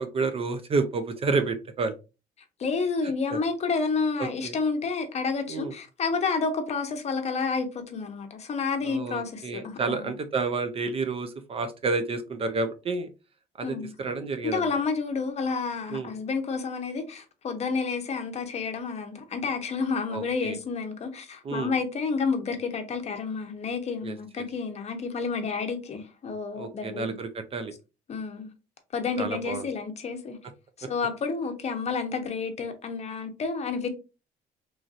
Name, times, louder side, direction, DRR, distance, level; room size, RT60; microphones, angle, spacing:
voice 1, 0.0-1.9 3.3-3.4 4.2-4.5 5.5-5.7 8.8-13.1 13.6-14.8 15.9-16.1 20.1-20.6 21.4-21.7 24.0-24.2 26.6-27.7 29.2-29.7, right 4 dB, 35° right, 0.4 m, -30 dB
voice 2, 2.6-10.1 13.6-27.2 28.1-28.5 28.9-30.4 30.8-33.9, left 4 dB, 40° left, 0.7 m, -30 dB
3.1 x 2.6 x 2.4 m
cardioid pair, 110°, 17 cm